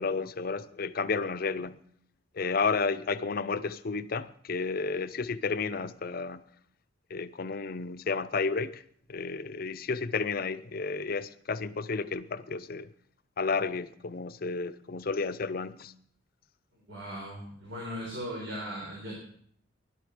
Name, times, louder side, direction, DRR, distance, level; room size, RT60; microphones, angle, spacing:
voice 1, 0.0-1.8 2.3-6.4 7.1-8.8 9.1-12.9 13.4-15.9, left 4 dB, 50° left, 0.6 m, -32 dB
voice 2, 16.7-19.2, equal, 80° right, 4.3 m, -38 dB
16.5 x 12.0 x 5.0 m
head